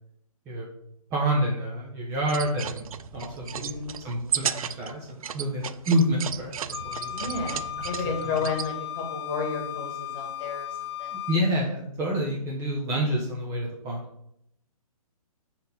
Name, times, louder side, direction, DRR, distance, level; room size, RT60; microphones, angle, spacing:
voice 1, 1.1-2.8 3.1-3.8 4.0-7.1 8.4-8.5 11.1-14.0, equal, 15° right, -2 dB, 0.7 m, -28 dB
sound 1, 2.2-8.7, right 8 dB, 65° right, 0.4 m, -34 dB
voice 2, 3.5-4.0 7.1-11.2, left 4 dB, 20° left, 2 dB, 1.4 m, -32 dB
Wind instrument woodwind instrument, 6.7-11.4, left 11 dB, 45° left, 0.5 m, -35 dB
4.3 x 4.2 x 5.2 m, 0.76 s
hypercardioid pair, 150°, 19 cm